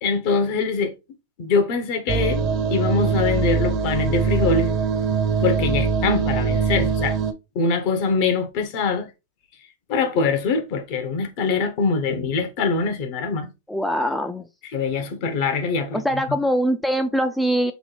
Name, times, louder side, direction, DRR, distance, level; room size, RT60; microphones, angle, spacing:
voice 1, 0.0-0.9 1.4-2.4 2.7-4.7 5.4-7.2 7.5-9.1 9.9-13.5 14.7-16.0 16.3-16.4, left 4 dB, 55° left, 1.0 m, -23 dB
sound 1, 2.1-7.3, right 5 dB, 40° right, 0.7 m, -22 dB
voice 2, 13.7-14.5 15.9-17.7, equal, 5° left, 0.4 m, -22 dB
3.5 x 2.2 x 4.0 m
hypercardioid pair, 100°, 0 cm